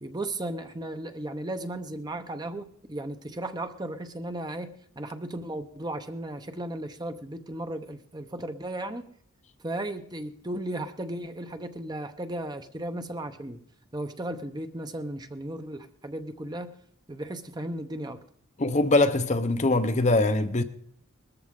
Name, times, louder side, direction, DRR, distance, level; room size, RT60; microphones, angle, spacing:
voice 1, 0.0-9.0 9.6-13.6 13.9-16.7 17.1-18.2, right 1 dB, 20° right, 0.8 m, -35 dB
voice 2, 18.6-20.6, left 2 dB, 35° left, 0.7 m, -22 dB
20.5 x 14.0 x 3.7 m
head